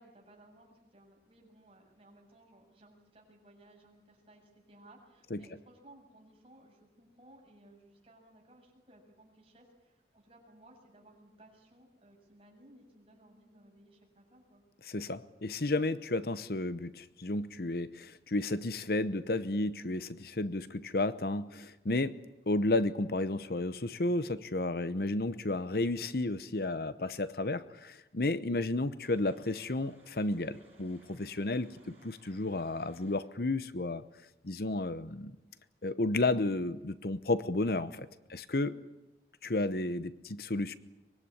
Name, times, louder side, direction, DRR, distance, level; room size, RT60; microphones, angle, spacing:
voice 1, 0.0-14.6 34.6-34.8, right 1 dB, 35° right, 0 dB, 7.5 m, -59 dB
voice 2, 14.8-22.2 22.5-34.0 34.4-35.4 35.8-38.8 39.4-40.7, left 2 dB, 60° left, 14 dB, 0.9 m, -32 dB
sound 1, 29.0-33.3, right 2 dB, 10° right, 6.9 m, -63 dB
24.0 x 21.0 x 9.9 m, 0.98 s
head